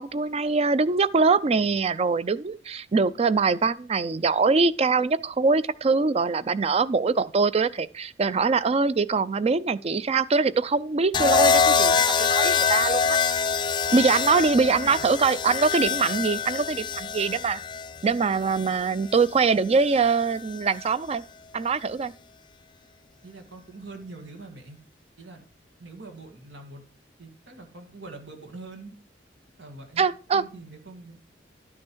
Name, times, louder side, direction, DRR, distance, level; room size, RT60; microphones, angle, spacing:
voice 1, 0.0-13.2 13.9-17.6 18.0-21.2 21.5-22.1 30.0-30.4, right 4 dB, 35° right, 0.4 m, -23 dB
sound 1, 11.1-19.3 20.5-20.9, left 6 dB, 25° left, 0.4 m, -24 dB
voice 2, 14.5-15.1 23.2-24.8 25.2-25.4 25.8-26.8 27.2-29.0 29.6-30.1 30.3-31.2, right 2 dB, 90° right, 1.8 m, -43 dB
11.5 x 6.4 x 4.6 m
head